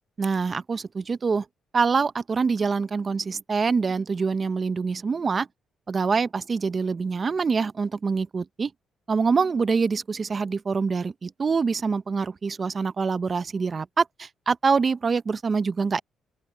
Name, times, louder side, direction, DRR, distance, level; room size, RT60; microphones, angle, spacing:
voice 1, 0.2-1.4 1.7-5.5 5.9-8.7 9.1-16.0, right 5 dB, 35° right, 0.6 m, -25 dB
open air
cardioid pair, 90°, 0 cm